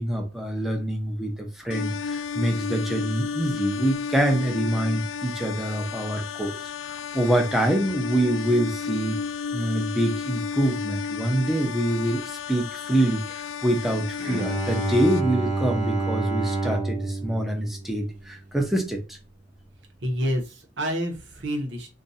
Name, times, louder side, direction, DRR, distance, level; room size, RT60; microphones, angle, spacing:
voice 1, 0.0-6.5 6.9-9.2 9.5-19.2, right 1 dB, ahead, 0.6 m, -25 dB
sound 1, 1.7-15.2, left 6 dB, 80° left, 0.3 m, -32 dB
Bowed string instrument, 14.2-18.7, right 3 dB, 40° right, 0.9 m, -29 dB
voice 2, 20.0-21.9, equal, 65° right, 1.0 m, -28 dB
2.6 x 2.5 x 4.0 m
head